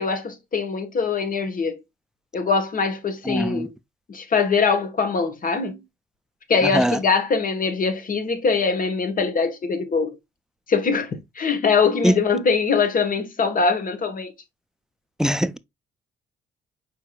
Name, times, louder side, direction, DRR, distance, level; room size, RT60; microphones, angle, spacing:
voice 1, 0.0-1.8 2.3-3.7 4.1-5.8 6.5-10.2 10.7-14.3, left 5 dB, 45° left, 1.2 m, -22 dB
voice 2, 3.3-3.7 6.6-7.0 12.0-12.2 15.2-15.6, equal, 5° right, 0.3 m, -21 dB
4.9 x 4.5 x 2.2 m
cardioid pair, 90°, 20 cm